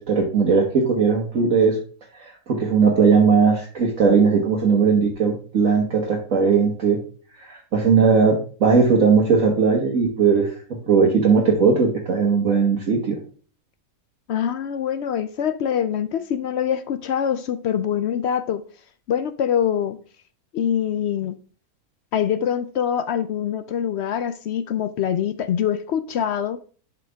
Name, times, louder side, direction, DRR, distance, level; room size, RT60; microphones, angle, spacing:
voice 1, 0.0-1.8 2.1-7.0 7.3-10.5 10.9-13.2, right 5 dB, 65° right, 1.6 m, -18 dB
voice 2, 14.3-18.6 19.1-20.0 20.5-21.4 22.1-26.6, left 9 dB, 65° left, 0.7 m, -24 dB
11.0 x 5.0 x 3.4 m
omnidirectional pair, 1.5 m